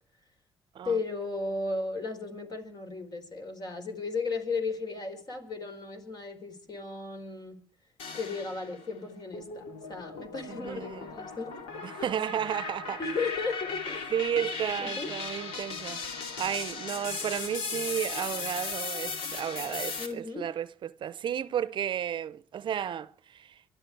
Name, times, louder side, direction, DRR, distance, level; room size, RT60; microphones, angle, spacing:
voice 1, 0.8-7.6 8.1-12.1 13.0-14.0 14.8-15.1 20.0-20.5, left 3 dB, 45° left, 4.6 m, -35 dB
sound 1, 8.0-8.9 9.3-20.1, left 4 dB, 80° left, 2.4 m, -37 dB
voice 2, 10.5-11.0 11.8-13.0 14.1-16.0 16.4-23.6, right 9 dB, 55° right, 0.7 m, -33 dB
24.0 x 12.0 x 4.7 m
supercardioid pair, 70°, 10 cm